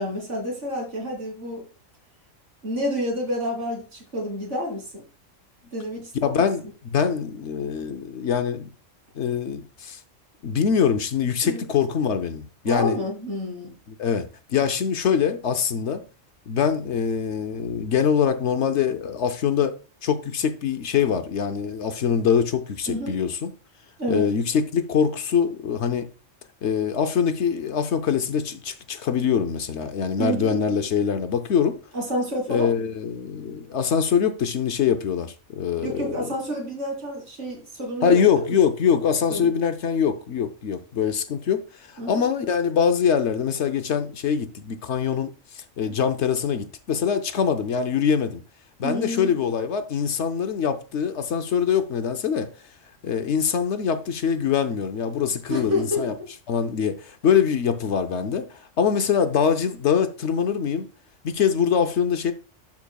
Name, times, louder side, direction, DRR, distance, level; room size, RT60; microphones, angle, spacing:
voice 1, 0.0-1.6 2.6-5.0 5.7-6.5 11.4-11.6 12.6-13.7 22.9-23.2 24.0-24.3 30.2-30.5 31.9-32.7 35.8-38.5 39.3-39.5 42.0-42.1 45.8-46.0 48.8-49.4 55.5-56.1, equal, 65° right, 3.3 m, -29 dB
voice 2, 6.2-8.7 9.2-10.0 10.4-13.0 13.9-16.0 16.5-19.7 20.0-23.5 24.1-26.1 26.6-31.8 32.5-36.2 38.0-48.4 48.8-52.5 53.0-56.1 56.5-60.9 61.2-62.3, left 7 dB, 65° left, 1.0 m, -23 dB
12.0 x 5.4 x 2.3 m
omnidirectional pair, 1.3 m